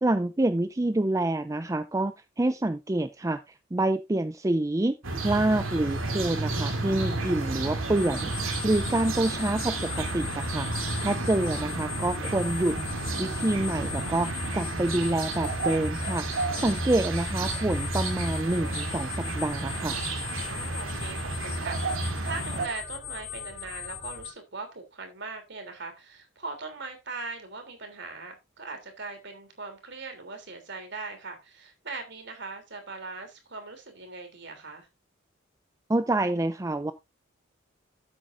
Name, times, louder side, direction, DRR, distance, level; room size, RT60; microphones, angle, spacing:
voice 1, 0.0-3.4 3.7-5.0 5.2-8.3 8.6-12.8 13.2-16.3 16.6-19.9 35.9-36.9, right 2 dB, 15° right, 0.4 m, -27 dB
sound 1, 5.0-22.7, right 2 dB, 85° right, 2.5 m, -31 dB
sound 2, 8.0-24.3, left 8 dB, 55° left, 4.0 m, -40 dB
voice 2, 9.0-9.4 16.6-16.8 20.5-34.9, right 3 dB, 60° right, 3.2 m, -40 dB
12.5 x 8.4 x 2.6 m
head